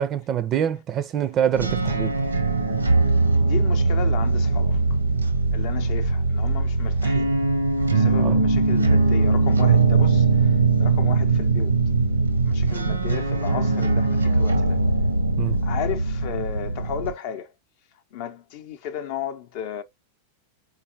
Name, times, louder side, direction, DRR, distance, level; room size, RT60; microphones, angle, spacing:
voice 1, 0.0-2.2 8.2-8.4 15.4-15.6, right 9 dB, 30° right, 0.5 m, -25 dB
sound 1, 1.5-17.1, right 3 dB, 80° right, 0.8 m, -21 dB
voice 2, 3.4-4.8 5.5-7.3 7.9-11.7 12.5-14.8 15.6-17.5 18.1-19.8, left 9 dB, 45° left, 0.6 m, -34 dB
4.1 x 4.0 x 2.7 m
figure-of-eight pair, 90°, 0 cm